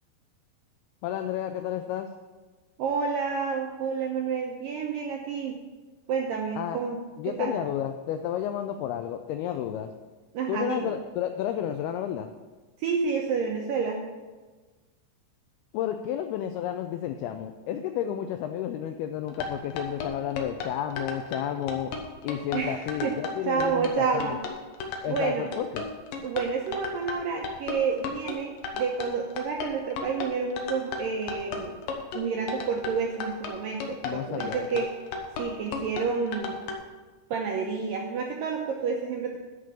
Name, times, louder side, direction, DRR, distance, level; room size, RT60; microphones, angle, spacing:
voice 1, 1.0-2.1 6.6-6.8 7.2-9.9 10.5-12.3 15.7-21.9 22.2-24.4 25.0-25.9 34.0-34.7, left 10 dB, 85° left, 7 dB, 2.2 m, -31 dB
voice 2, 2.8-5.6 6.1-7.0 7.2-7.6 10.3-10.9 12.8-14.0 22.5-23.1 23.4-24.3 25.1-25.5 26.2-31.7 32.1-34.9 35.4-36.6 37.3-39.4, right 5 dB, 80° right, 0 dB, 2.0 m, -29 dB
sound 1, 19.3-36.8, left 4 dB, 70° left, 2.3 m, -34 dB
11.0 x 5.1 x 7.1 m, 1.3 s
omnidirectional pair, 5.0 m